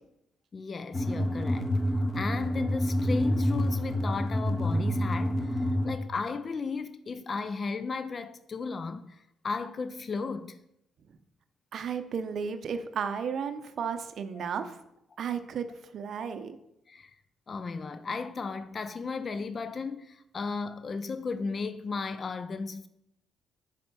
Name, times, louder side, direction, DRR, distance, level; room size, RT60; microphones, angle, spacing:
voice 1, 0.5-1.7 2.1-10.6 14.3-14.4 16.9-17.1 17.5-22.9, left 4 dB, 40° left, 0.4 m, -35 dB
sound 1, 0.9-5.9, equal, 20° left, 0.9 m, -28 dB
voice 2, 11.7-14.8 15.2-15.7 15.9-16.6, right 6 dB, 60° right, 0.5 m, -33 dB
5.3 x 4.2 x 5.9 m
cardioid pair, 90°, 0 cm